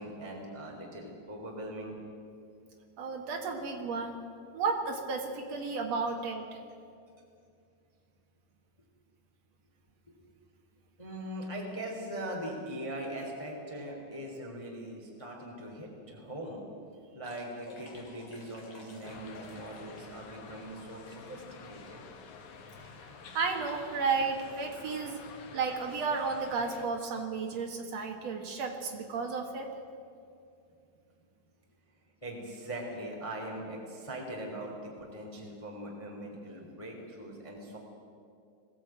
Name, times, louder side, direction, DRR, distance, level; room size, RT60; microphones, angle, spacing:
voice 1, 0.0-2.0 11.0-16.6 17.1-22.0 32.2-37.8, right 1 dB, 10° left, -1 dB, 2.4 m, -41 dB
voice 2, 3.0-4.2 4.5-6.6 23.3-25.2 25.5-29.7, right 4 dB, 60° right, 2 dB, 1.8 m, -33 dB
sound 1, 17.2-20.3 20.6-21.8 22.4-22.5 22.7-23.0 23.3-23.4 24.0-24.3 24.6-24.8 25.5-25.6 26.0-26.1, left 2 dB, 35° left, 2.6 m, -53 dB
sound 2, 19.0-26.9, left 5 dB, 60° left, 2.1 m, -49 dB
21.0 x 15.5 x 9.0 m, 2.4 s
omnidirectional pair, 5.4 m